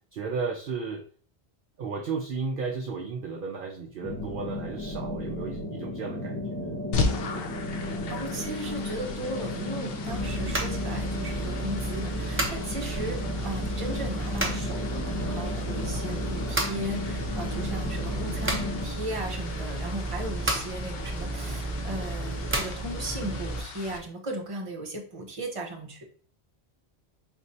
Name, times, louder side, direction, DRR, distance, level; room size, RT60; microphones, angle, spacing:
voice 1, 0.1-1.0 1.8-6.7, right 4 dB, 60° right, 2 dB, 0.7 m, -34 dB
sound 1, 4.0-18.9, left 2 dB, 20° left, 1.3 m, -34 dB
sound 2, 6.9-24.0, left 4 dB, 65° left, 0.8 m, -38 dB
voice 2, 8.1-26.0, right 1 dB, 30° right, 0 dB, 0.9 m, -36 dB
sound 3, 10.1-23.6, right 2 dB, 15° right, 0.5 m, -32 dB
4.4 x 3.1 x 2.7 m, 0.44 s
omnidirectional pair, 1.1 m